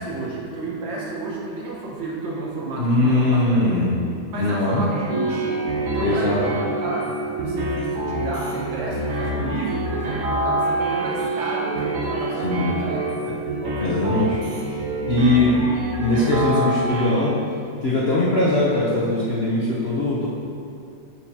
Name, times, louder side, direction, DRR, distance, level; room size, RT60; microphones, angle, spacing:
voice 1, 0.0-3.8 4.3-14.1, right 2 dB, 80° right, -5 dB, 2.0 m, -31 dB
voice 2, 2.8-4.0 4.4-4.8 6.0-6.4 12.4-12.8 13.8-14.4 14.7-14.8 15.1-15.6 16.0-17.3 17.8-20.3, left 2 dB, 65° left, -7 dB, 0.6 m, -20 dB
sound 1, 4.9-17.1, right 2 dB, 55° right, 1.1 m, -26 dB
8.3 x 4.6 x 2.8 m, 2.5 s
omnidirectional pair, 2.1 m